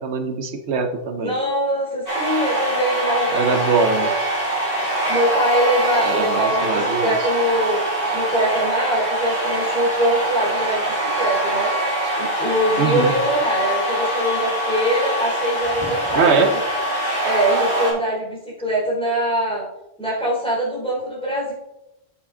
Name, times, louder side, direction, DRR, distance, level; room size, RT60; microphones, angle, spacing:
voice 1, 0.0-1.4 3.3-4.1 6.0-7.2 12.8-13.1 16.1-16.5, right 5 dB, 85° right, 7 dB, 1.0 m, -21 dB
voice 2, 1.2-3.6 4.0-4.1 5.1-7.8 8.1-11.7 12.2-16.6 17.2-19.6 20.0-21.5, equal, 5° left, -6 dB, 3.1 m, -23 dB
sound 1, 2.1-17.9, right 1 dB, 40° right, 3.8 m, -23 dB
8.9 x 6.6 x 3.7 m, 0.92 s
omnidirectional pair, 1.1 m